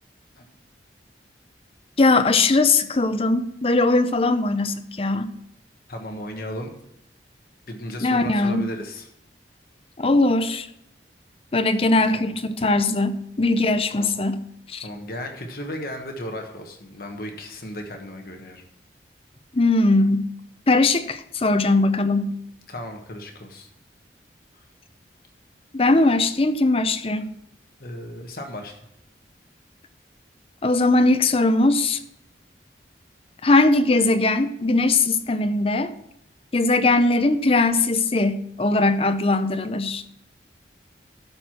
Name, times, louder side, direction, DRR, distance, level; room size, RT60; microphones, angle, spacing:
voice 1, 2.0-5.3 8.0-8.6 10.0-10.7 11.5-14.4 14.7-14.9 19.5-20.3 20.7-22.3 25.7-27.3 30.6-32.0 33.4-35.9 36.5-40.0, left 2 dB, 30° left, 0.6 m, -20 dB
voice 2, 5.9-6.7 7.7-9.1 12.1-12.3 13.9-14.2 14.8-18.6 22.7-23.7 24.5-24.6 27.8-28.8, left 1 dB, 55° left, 1.3 m, -35 dB
12.0 x 4.7 x 5.9 m
head